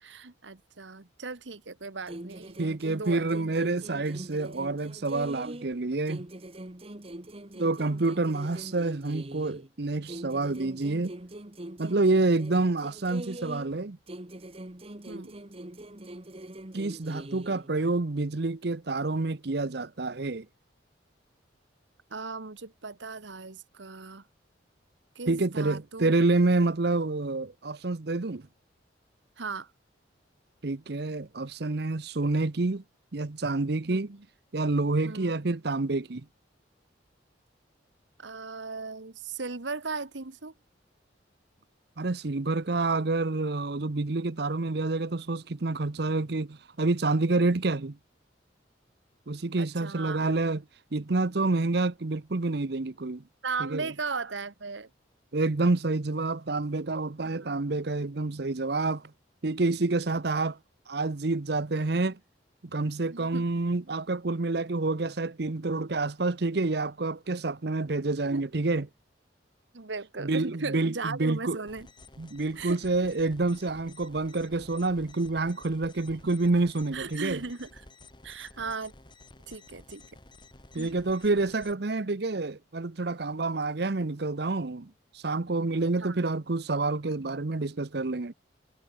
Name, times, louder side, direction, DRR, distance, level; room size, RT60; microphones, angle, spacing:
voice 1, 0.0-2.6 2.9-3.3 7.5-7.6 15.1-15.4 22.1-24.2 25.1-26.1 29.4-29.7 33.9-34.2 35.1-35.3 38.2-40.5 49.6-50.3 53.4-54.9 57.2-57.6 63.0-63.4 68.2-68.4 69.7-71.9 72.6-72.8 76.9-77.8 78.2-78.9 79.5-80.0 80.7-80.9 86.0-86.2, right 4 dB, 75° right, 1.4 m, -37 dB
sound 1, 2.1-5.8 6.1-9.7 10.1-13.8 14.1-17.7, right 1 dB, 30° right, 1.5 m, -43 dB
voice 2, 2.6-6.3 7.6-11.1 11.8-14.0 16.7-20.5 25.3-28.5 30.6-32.8 33.1-34.1 34.5-36.2 42.0-48.0 49.3-50.6 50.9-53.2 53.6-53.9 55.3-59.0 59.4-60.6 60.9-62.2 62.7-68.9 70.2-71.6 72.2-77.4 80.7-88.3, right 3 dB, 60° right, 0.8 m, -28 dB
sound 2, 71.7-81.7, left 2 dB, 25° left, 3.1 m, -52 dB
head